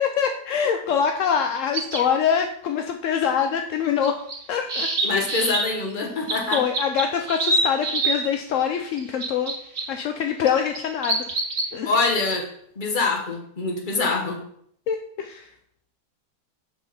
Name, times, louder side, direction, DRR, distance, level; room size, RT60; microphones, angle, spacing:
voice 1, 0.0-4.2 4.5-5.2 6.5-9.5 9.9-11.2 11.7-11.9 14.9-15.5, left 7 dB, 70° left, 5 dB, 0.7 m, -24 dB
sound 1, 1.7-2.0 4.0-5.6 6.3-8.2 8.9-9.8 10.5-11.7, right 2 dB, 60° right, 2.0 m, -25 dB
voice 2, 5.0-6.6 11.8-12.5 12.8-14.4, left 3 dB, 30° left, 2 dB, 1.2 m, -24 dB
8.1 x 3.7 x 5.6 m, 0.68 s
omnidirectional pair, 1.8 m